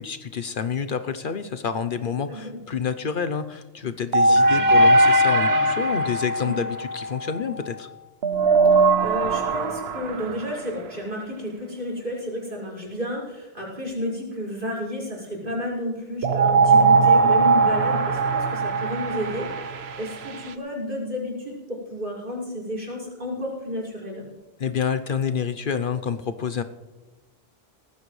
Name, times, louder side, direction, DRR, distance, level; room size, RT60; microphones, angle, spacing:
voice 1, 0.0-7.9 24.6-26.6, left 6 dB, 60° left, 10 dB, 0.9 m, -28 dB
sound 1, 4.1-7.7 8.2-10.7 16.2-20.5, right 3 dB, 90° right, 1.1 m, -20 dB
voice 2, 4.3-4.6 6.4-6.6 9.0-24.2, equal, 55° right, -5 dB, 5.5 m, -32 dB
18.5 x 15.0 x 3.2 m, 1.1 s
omnidirectional pair, 1.0 m